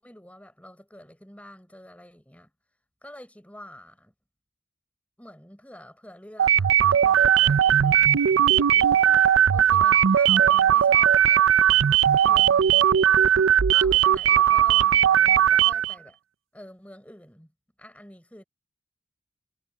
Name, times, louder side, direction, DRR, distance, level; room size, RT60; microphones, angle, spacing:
voice 1, 0.0-2.5 3.0-4.1 5.2-8.0 8.5-9.1 9.5-11.2 12.2-12.9 13.7-16.2 16.5-17.5 17.8-18.4, left 1 dB, 5° left, 6.9 m, -47 dB
sound 1, 6.4-15.9, right 9 dB, 80° right, 0.5 m, -18 dB
head